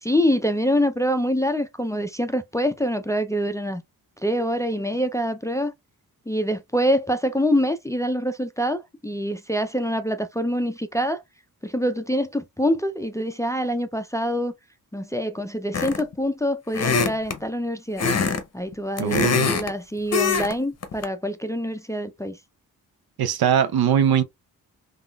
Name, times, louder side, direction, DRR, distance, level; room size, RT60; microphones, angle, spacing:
voice 1, 0.0-3.8 4.2-5.7 6.3-11.2 11.6-14.5 14.9-18.1 18.5-22.4, equal, 10° left, 0.4 m, -25 dB
sound 1, 15.7-16.1 16.7-17.4 18.0-18.4 18.7-19.7 20.1-20.5 20.8-21.0, left 5 dB, 40° left, 0.7 m, -22 dB
voice 2, 19.0-19.5 23.2-24.2, right 9 dB, 75° right, 0.6 m, -21 dB
3.6 x 2.4 x 2.2 m
cardioid pair, 55°, 39 cm